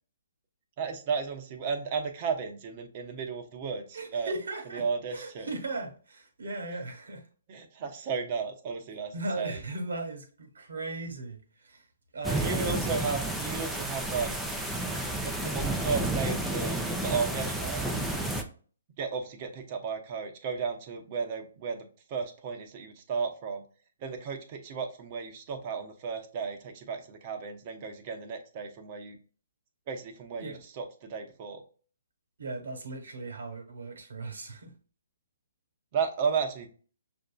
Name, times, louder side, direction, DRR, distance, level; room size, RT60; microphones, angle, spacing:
voice 1, 0.8-4.3 4.7-5.5 6.7-6.8 7.5-9.6 12.4-14.3 15.2-17.8 19.0-23.6 24.0-29.2 29.9-31.6 35.9-36.7, right 5 dB, 40° right, 0.8 m, -34 dB
voice 2, 3.9-7.3 9.1-11.9 12.1-12.8 30.3-30.6 32.4-34.7, right 2 dB, 70° right, 1.3 m, -37 dB
sound 1, 12.2-18.4, right 1 dB, ahead, 0.5 m, -31 dB
6.3 x 2.6 x 2.3 m
figure-of-eight pair, 130°, 0 cm